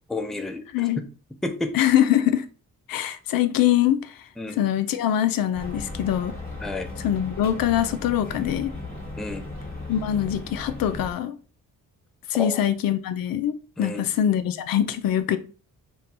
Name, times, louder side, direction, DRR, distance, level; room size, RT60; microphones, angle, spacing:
voice 1, 0.1-0.6 1.0-1.1 1.4-1.8 4.4-4.6 6.6-6.9 9.2-9.5 12.3-12.6 13.8-14.1, left 2 dB, ahead, 0.4 m, -30 dB
voice 2, 1.7-2.4 2.9-4.1 4.6-6.3 7.0-8.7 9.9-11.3 12.3-15.4, left 11 dB, 70° left, 0.5 m, -23 dB
sound 1, 5.5-11.1, left 2 dB, 25° left, 1.5 m, -36 dB
2.6 x 2.2 x 4.0 m
cardioid pair, 80°, 35 cm